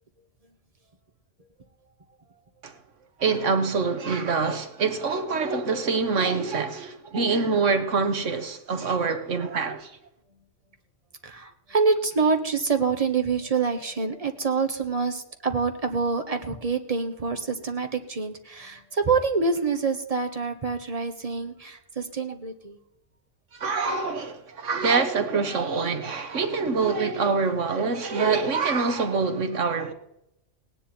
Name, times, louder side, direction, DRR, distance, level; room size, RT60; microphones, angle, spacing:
voice 1, 3.2-9.9 23.5-29.9, right 4 dB, 75° right, 1.5 m, -25 dB
voice 2, 11.2-22.8, right 4 dB, 30° right, 1.2 m, -26 dB
18.0 x 10.0 x 4.3 m
omnidirectional pair, 1.3 m